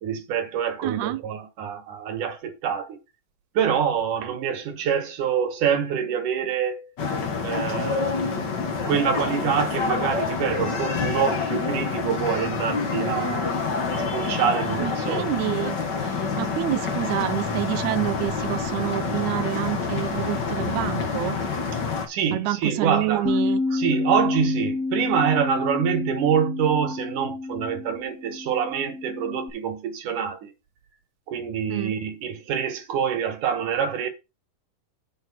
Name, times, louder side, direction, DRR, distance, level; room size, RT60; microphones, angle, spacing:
voice 1, 0.0-3.0 3.5-6.9 7.4-8.5 8.8-13.5 13.9-15.3 22.1-23.4 23.7-30.5 31.3-34.1, right 7 dB, 65° right, 2.7 m, -26 dB
voice 2, 0.8-1.2 14.8-21.4 22.3-23.8 31.7-31.9, right 15 dB, 80° right, 1.7 m, -28 dB
sound 1, 7.0-22.1, left 5 dB, 70° left, 1.0 m, -27 dB
Bass guitar, 23.2-29.5, left 3 dB, 45° left, 1.1 m, -28 dB
8.4 x 4.6 x 6.0 m
omnidirectional pair, 4.1 m